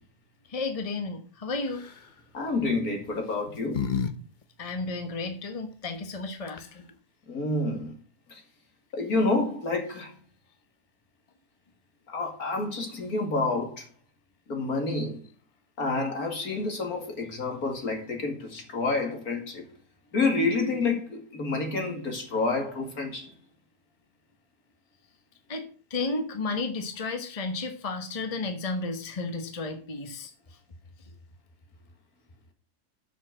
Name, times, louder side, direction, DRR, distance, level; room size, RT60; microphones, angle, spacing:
voice 1, 0.5-1.8 4.6-6.8 25.5-30.3, left 3 dB, 25° left, 1.3 m, -33 dB
sound 1, 1.7-2.1 3.0-4.1 4.4-4.5 6.2-6.3 6.5-6.9, left 7 dB, 40° left, 0.8 m, -32 dB
voice 2, 2.3-3.8 7.3-7.9 8.3-8.4 8.9-10.1 12.1-13.9 14.5-15.2 15.8-19.6 20.1-23.3, left 3 dB, 65° left, 2.7 m, -28 dB
7.6 x 6.6 x 7.6 m
omnidirectional pair, 1.7 m